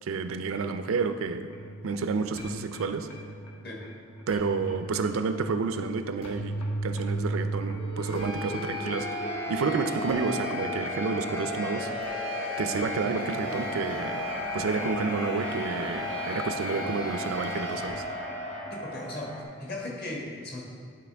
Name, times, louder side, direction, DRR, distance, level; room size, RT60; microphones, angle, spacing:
voice 1, 0.0-1.5 1.8-3.1 4.3-9.1 9.5-11.9 12.6-14.3 14.5-18.0, right 4 dB, 85° right, 9 dB, 0.4 m, -30 dB
sound 1, 1.4-19.4, equal, 75° left, 1.3 m, -34 dB
voice 2, 18.7-20.6, left 2 dB, 50° left, -3 dB, 1.5 m, -37 dB
11.0 x 4.2 x 3.4 m, 2.1 s
head